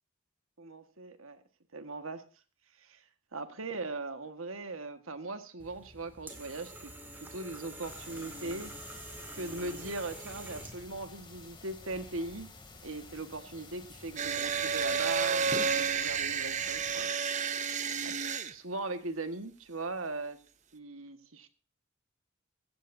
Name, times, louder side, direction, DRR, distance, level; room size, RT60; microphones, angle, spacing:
voice 1, 0.6-1.4 1.7-2.2 2.8-3.0 3.3-8.7 9.3-12.5 12.8-17.1 18.0-18.2 18.5-20.4 20.7-21.5, right 2 dB, 85° right, 8 dB, 1.7 m, -39 dB
sound 1, 5.6-11.0, right 1 dB, 10° right, 2.5 m, -46 dB
sound 2, 7.8-17.0, left 3 dB, 25° left, 2.7 m, -52 dB
electromotor-micinductive, 14.2-18.5, right 6 dB, 35° right, 0.9 m, -31 dB
16.5 x 14.0 x 2.7 m, 0.35 s
head